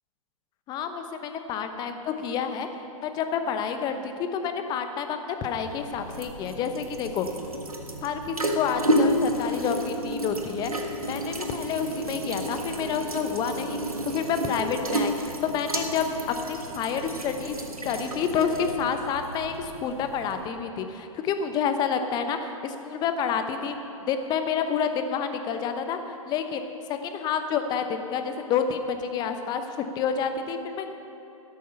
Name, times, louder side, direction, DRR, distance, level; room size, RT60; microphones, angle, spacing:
voice 1, 0.7-2.7 3.0-7.3 8.0-10.7 11.1-13.8 14.0-15.1 15.4-16.1 16.4-17.6 17.8-23.8 24.1-26.0 26.3-26.6 26.9-30.9, left 7 dB, 25° left, 7 dB, 0.9 m, -29 dB
sound 1, 5.5-20.5, equal, 85° right, 1.4 m, -31 dB
13.0 x 12.0 x 5.6 m, 2.9 s
figure-of-eight pair, 110°, 18 cm